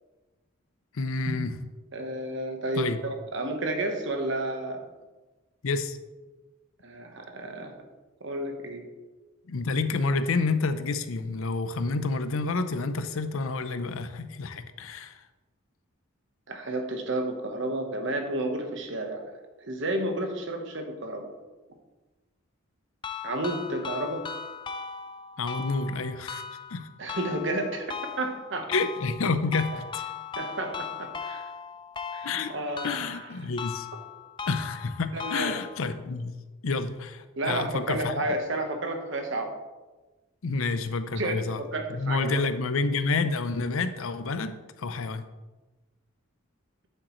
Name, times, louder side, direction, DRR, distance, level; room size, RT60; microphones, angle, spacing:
voice 1, 0.9-1.5 2.8-3.0 5.6-6.0 9.5-15.1 25.4-26.4 26.7-26.9 28.7-30.0 32.2-32.5 32.8-33.9 34.5-36.3 36.6-38.2 40.4-41.6 41.9-45.3, left 3 dB, 70° left, 11 dB, 0.6 m, -29 dB
voice 2, 1.9-4.8 6.8-7.7 8.2-8.9 16.5-19.2 19.6-21.3 23.2-24.2 27.0-28.7 30.3-31.5 32.1-33.3 35.1-35.5 37.4-39.6 41.2-42.4, right 2 dB, 55° right, 5 dB, 1.1 m, -31 dB
sound 1, 23.0-36.0, left 6 dB, 20° left, 0.4 m, -38 dB
9.0 x 8.0 x 3.1 m, 1.2 s
head